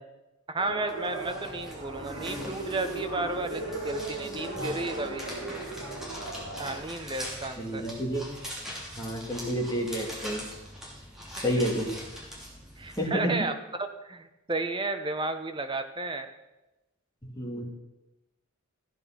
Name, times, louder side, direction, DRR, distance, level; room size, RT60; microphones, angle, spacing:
voice 1, 0.5-5.2 6.6-7.8 12.8-16.3, right 2 dB, 20° right, 7 dB, 0.9 m, -33 dB
sound 1, 0.6-6.8, right 2 dB, 60° right, 3.6 m, -37 dB
sound 2, 0.9-13.0, equal, ahead, 3.0 m, -42 dB
voice 2, 7.6-8.3 9.0-10.5 11.4-11.9 13.0-13.4 17.2-17.6, equal, 15° left, -1 dB, 2.2 m, -29 dB
14.5 x 9.0 x 5.8 m, 1.0 s
head